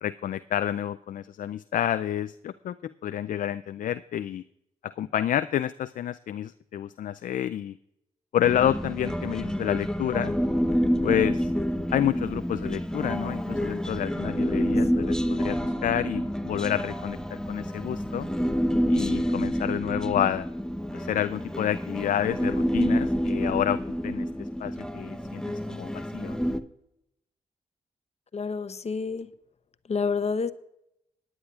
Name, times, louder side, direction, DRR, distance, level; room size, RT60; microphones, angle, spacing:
voice 1, 0.0-4.4 4.8-7.8 8.3-10.4 11.0-11.5 11.9-18.3 18.9-20.5 20.9-26.5, left 11 dB, 65° left, 0.4 m, -29 dB
Human voice, 8.4-26.6, equal, 5° left, 0.9 m, -28 dB
voice 2, 28.3-29.3 29.9-30.5, left 5 dB, 45° left, 0.9 m, -29 dB
19.0 x 9.7 x 2.4 m
supercardioid pair, 40°, 15 cm